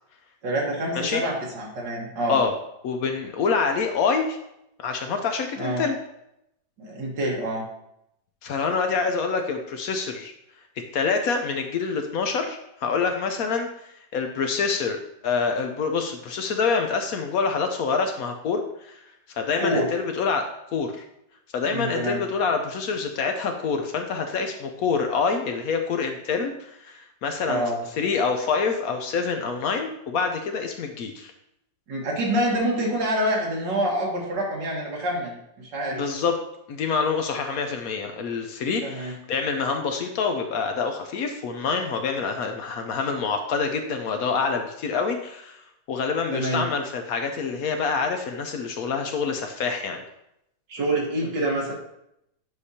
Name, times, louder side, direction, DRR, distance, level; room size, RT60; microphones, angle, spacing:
voice 1, 0.4-2.4 5.6-5.8 6.8-7.6 19.6-19.9 21.7-22.2 27.5-27.8 31.9-36.0 38.8-39.1 46.3-46.7 50.7-51.7, right 1 dB, 75° right, -3 dB, 2.2 m, -26 dB
voice 2, 2.8-4.4 4.8-6.0 8.4-10.3 10.9-19.0 19.3-21.0 21.5-27.7 28.0-31.3 35.9-36.4 36.7-45.6 45.9-50.0, left 5 dB, 70° left, 5 dB, 0.9 m, -26 dB
8.1 x 4.9 x 2.8 m, 0.81 s
omnidirectional pair, 1.9 m